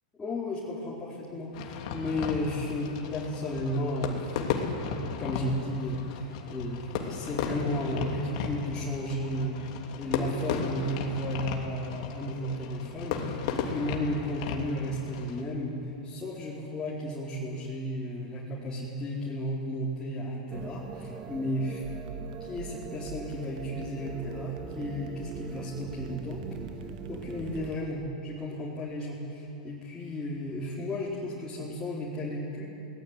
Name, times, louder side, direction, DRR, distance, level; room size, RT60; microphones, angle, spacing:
voice 1, 0.2-21.8 22.4-26.4 26.8-32.6, left 1 dB, 15° left, -8 dB, 4.6 m, -34 dB
Fireworks, 1.5-15.4, left 6 dB, 60° left, 3.1 m, -35 dB
sound 1, 20.5-27.7, right 6 dB, 25° right, 1.8 m, -42 dB
sound 2, 21.8-28.2, right 6 dB, 65° right, 1.7 m, -46 dB
23.0 x 19.5 x 9.5 m, 2.7 s
hypercardioid pair, 130°, 4 cm